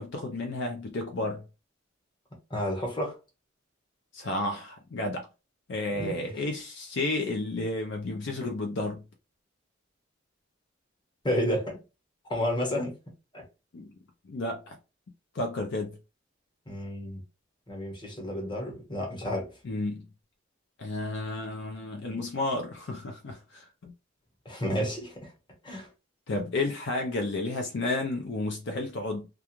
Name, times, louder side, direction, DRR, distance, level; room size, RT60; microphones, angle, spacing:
voice 1, 0.0-1.4 4.1-5.3 5.7-9.0 13.7-13.9 14.3-14.7 15.3-16.0 19.6-20.1 20.8-23.9 26.3-29.3, left 2 dB, 65° left, 0.5 m, -32 dB
voice 2, 2.5-3.2 5.9-6.3 11.2-11.8 12.3-12.9 13.3-13.4 16.7-17.2 17.7-19.5 24.4-25.3 25.6-25.9, equal, 25° left, 1.0 m, -31 dB
2.4 x 2.3 x 2.9 m
head